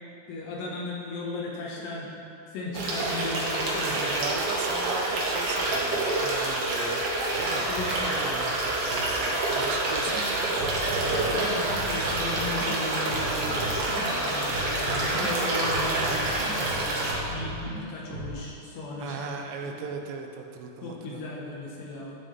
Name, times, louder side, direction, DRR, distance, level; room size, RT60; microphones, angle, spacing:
voice 1, 0.3-2.1 2.5-4.2 7.7-8.2 11.1-13.6 14.0-19.3 20.8-22.2, left 2 dB, 75° left, -4 dB, 3.4 m, -36 dB
sound 1, 2.7-17.1, right 2 dB, 65° right, 2.4 m, -27 dB
voice 2, 3.8-7.1 7.3-7.7 8.2-11.6 13.4-14.0 19.0-21.2, right 5 dB, 90° right, 4 dB, 2.9 m, -38 dB
sound 2, 10.0-10.2 10.6-12.7 13.1-15.2 15.6-17.8 18.1-18.3, right 1 dB, 40° right, 2.2 m, -37 dB
15.0 x 5.8 x 3.4 m, 2.6 s
omnidirectional pair, 5.0 m